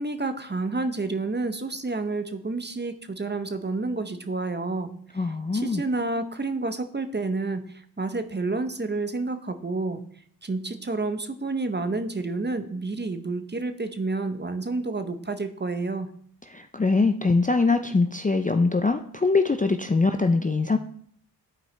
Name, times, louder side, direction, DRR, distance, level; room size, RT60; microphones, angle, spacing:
voice 1, 0.0-4.9 5.5-10.0 10.4-16.1, right 3 dB, 25° right, 9 dB, 0.8 m, -29 dB
voice 2, 5.1-5.8 16.5-20.8, left 3 dB, 20° left, 7 dB, 0.5 m, -23 dB
11.5 x 4.6 x 3.3 m, 0.62 s
cardioid pair, 40°, 42 cm